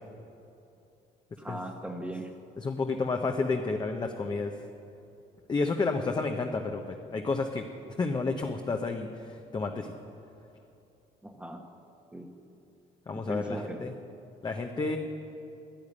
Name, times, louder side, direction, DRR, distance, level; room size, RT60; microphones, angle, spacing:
voice 1, 1.4-2.3 11.2-11.6 12.1-12.3 13.1-13.8, right 1 dB, 5° right, 2 dB, 1.1 m, -39 dB
voice 2, 2.6-4.5 5.5-7.6 8.0-9.9 13.1-13.9 14.4-15.0, left 3 dB, 25° left, 3 dB, 0.8 m, -30 dB
10.5 x 10.5 x 9.7 m, 2.8 s
cardioid pair, 110°, 17 cm